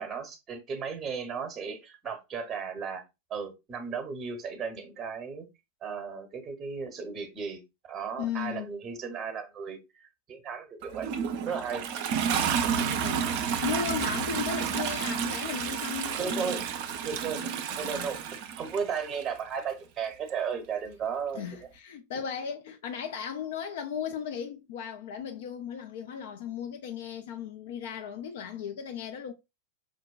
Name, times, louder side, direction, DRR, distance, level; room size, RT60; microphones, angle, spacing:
voice 1, 0.0-3.0 3.3-5.5 5.8-7.6 7.9-10.0 10.3-11.1 11.4-11.9 16.2-16.6 17.0-17.4 17.8-18.2 18.6-21.4, right 6 dB, 25° right, 0.8 m, -35 dB
voice 2, 8.2-8.7 12.3-13.2 13.6-16.6 17.2-18.1 21.3-29.3, left 8 dB, 55° left, 0.4 m, -36 dB
Toilet flush, 10.8-19.2 20.3-20.4, right 7 dB, 45° right, 0.4 m, -31 dB
5.1 x 2.1 x 2.2 m
figure-of-eight pair, 90°, 0 cm